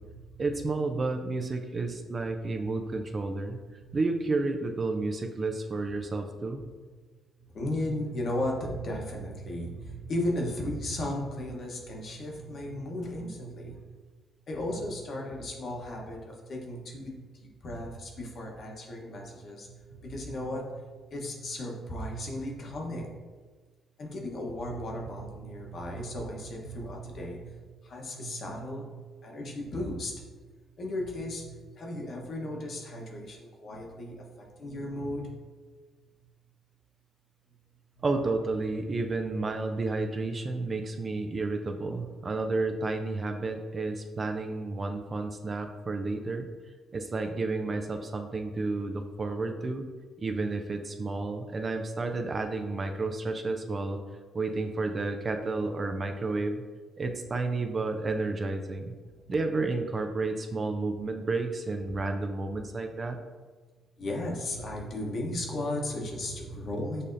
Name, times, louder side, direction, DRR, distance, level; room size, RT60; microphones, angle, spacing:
voice 1, 0.4-3.6 3.9-6.6 38.0-46.5 46.9-49.9 50.2-54.0 54.3-56.6 57.0-58.9 59.3-63.2, right 3 dB, 35° right, 5 dB, 0.4 m, -31 dB
voice 2, 7.5-13.8 14.5-19.8 20.0-20.7 21.1-23.2 24.0-30.3 30.8-35.3 59.2-59.3 64.0-67.0, left 1 dB, 55° left, 0 dB, 0.9 m, -35 dB
6.6 x 2.7 x 2.5 m, 1.4 s
cardioid pair, 90°, 0 cm